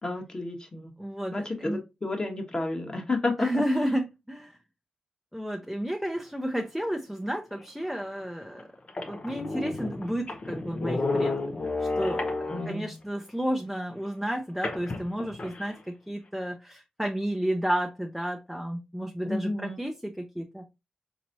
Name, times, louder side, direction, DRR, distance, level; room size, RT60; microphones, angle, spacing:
voice 1, 0.0-0.9 1.3-3.5 12.5-12.8 19.2-19.8, left 2 dB, 35° left, 1.3 m, -31 dB
voice 2, 1.0-1.8 3.4-4.6 5.3-8.7 9.0-20.7, equal, ahead, 0.6 m, -32 dB
sound 1, 7.9-8.0 8.6-8.7 8.9-13.0 14.6-15.7, left 2 dB, 55° left, 0.8 m, -31 dB
4.1 x 3.1 x 2.6 m
cardioid pair, 50°, 2 cm